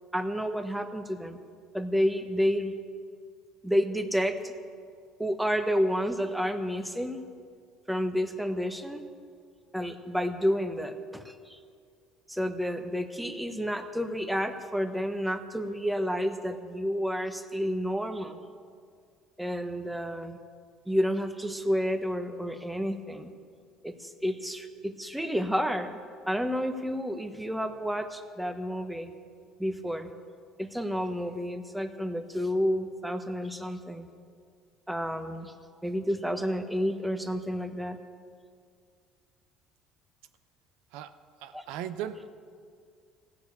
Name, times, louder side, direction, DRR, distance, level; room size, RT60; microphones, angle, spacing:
voice 1, 0.1-1.4 1.7-2.7 3.6-4.5 5.2-7.2 7.9-9.0 9.7-11.6 12.3-18.4 19.4-20.4 20.9-23.3 23.8-26.0 26.3-29.1 29.6-30.1 30.6-34.1 34.9-35.5 35.8-38.0 41.5-41.6, equal, 5° right, 7 dB, 1.1 m, -30 dB
voice 2, 41.4-42.3, right 10 dB, 80° right, 10 dB, 0.6 m, -37 dB
16.0 x 6.8 x 8.2 m, 2.2 s
supercardioid pair, 95°, 0 cm